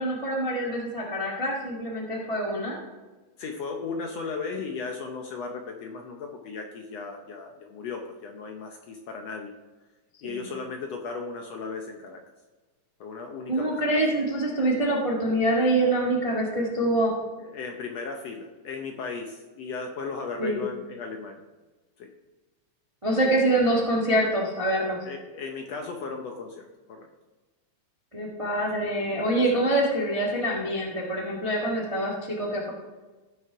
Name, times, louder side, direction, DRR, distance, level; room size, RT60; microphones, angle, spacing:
voice 1, 0.0-2.8 10.2-10.5 13.5-17.1 20.4-20.6 23.0-25.0 28.1-32.7, right 1 dB, 20° right, -2 dB, 0.7 m, -25 dB
voice 2, 3.4-9.5 10.2-12.2 13.0-13.9 17.4-21.4 22.0-22.1 25.0-27.1 28.9-29.6, left 4 dB, 70° left, 3 dB, 1.7 m, -36 dB
15.0 x 6.4 x 4.6 m, 1.2 s
omnidirectional pair, 3.7 m